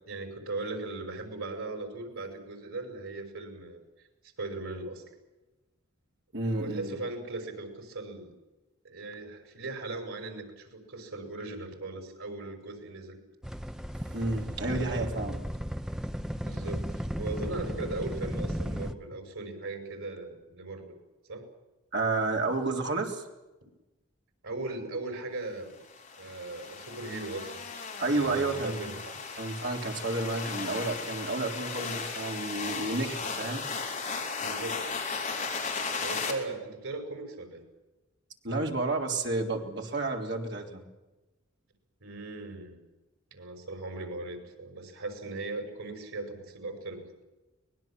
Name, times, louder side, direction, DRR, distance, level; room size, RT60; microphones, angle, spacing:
voice 1, 0.0-3.8 4.4-5.0 6.5-8.3 8.8-13.2 14.6-15.4 16.4-16.8 17.2-21.0 21.3-21.5 24.4-25.8 26.2-27.7 28.1-29.0 34.4-34.9 36.0-37.6 42.0-42.8 43.3-47.2, right 2 dB, 90° right, 5 dB, 5.9 m, -38 dB
voice 2, 6.3-7.0 14.1-15.4 21.9-23.2 28.0-28.9 29.4-33.6 38.4-40.8, right 2 dB, 55° right, 1 dB, 3.5 m, -31 dB
sound 1, 13.4-18.9, equal, 5° right, 0.7 m, -35 dB
sound 2, 25.9-36.3, left 5 dB, 35° left, 4.1 m, -36 dB
24.0 x 20.5 x 7.6 m, 1.1 s
head